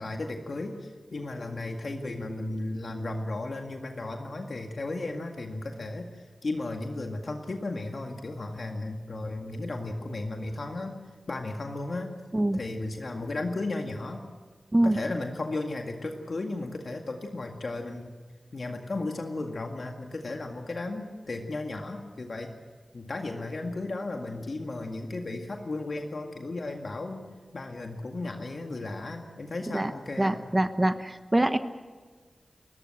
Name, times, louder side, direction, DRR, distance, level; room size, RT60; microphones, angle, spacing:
voice 1, 0.0-11.0 11.3-12.1 12.5-14.2 14.8-18.2 18.5-22.5 22.9-27.2 27.5-30.5, left 2 dB, 65° left, 3 dB, 2.0 m, -35 dB
voice 2, 30.2-31.6, right 1 dB, 25° right, 10 dB, 1.1 m, -24 dB
29.5 x 14.0 x 7.8 m, 1.5 s
cardioid pair, 40°, 0 cm